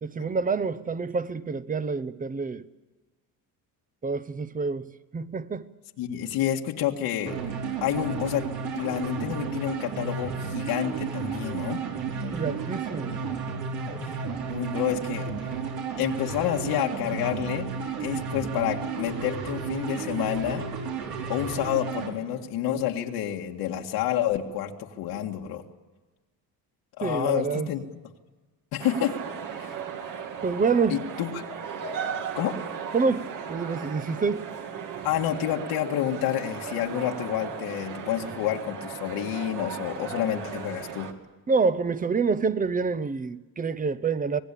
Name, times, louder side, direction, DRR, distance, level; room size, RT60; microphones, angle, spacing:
voice 1, 0.0-2.6 4.0-4.9 5.1-5.7 12.3-13.2 27.0-27.7 30.4-31.0 32.9-34.5 41.5-44.4, right 4 dB, 20° right, 0.8 m, -27 dB
voice 2, 6.0-7.4 7.8-8.4 8.7-11.8 14.5-15.3 16.0-17.7 18.0-20.6 21.3-25.6 27.0-27.8 28.7-29.2 29.6-29.7 30.9-31.4 32.4-32.6 35.0-41.1, left 11 dB, 90° left, 2.0 m, -29 dB
sound 1, 7.3-22.1, right 5 dB, 75° right, 4.6 m, -32 dB
sound 2, 28.8-41.1, right 7 dB, 55° right, 2.3 m, -36 dB
26.0 x 19.0 x 8.5 m
cardioid pair, 140°, 37 cm